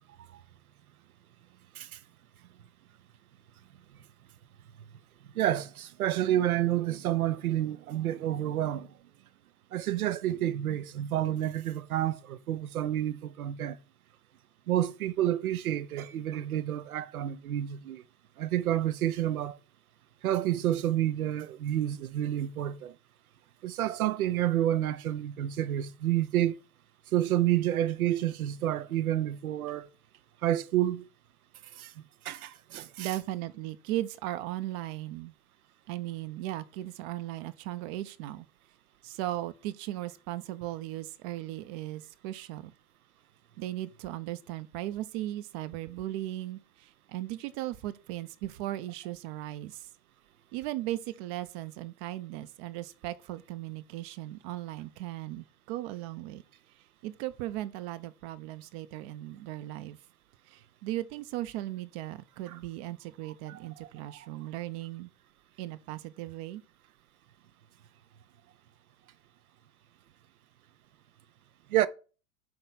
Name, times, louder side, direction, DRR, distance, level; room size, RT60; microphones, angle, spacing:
voice 1, 5.3-8.9 9.7-13.8 14.7-18.0 18.4-19.6 20.2-23.0 23.6-26.6 27.1-29.9 30.4-31.1 31.8-31.9 32.2-33.1 63.5-63.6 64.1-64.2 71.7-71.9, right 12 dB, 75° right, 0.8 m, -29 dB
voice 2, 33.0-35.3 35.9-38.5 39.0-42.7 43.6-49.9 50.5-56.4 57.0-60.0 60.5-65.1 65.6-66.6, right 15 dB, 45° right, 0.7 m, -37 dB
8.8 x 3.3 x 5.6 m
hypercardioid pair, 95°, 43 cm